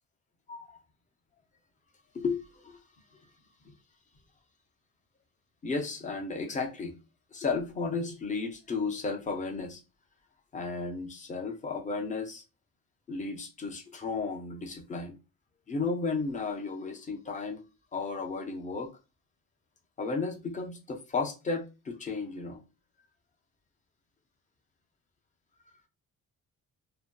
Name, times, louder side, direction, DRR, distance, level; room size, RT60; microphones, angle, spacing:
voice 1, 2.1-2.8 5.6-6.9 7.3-9.8 10.5-12.4 13.1-15.2 15.7-17.6 17.9-18.9 20.0-22.6, left 4 dB, 25° left, 0.4 m, -34 dB
2.7 x 2.6 x 2.2 m
cardioid pair, 165°, 31 cm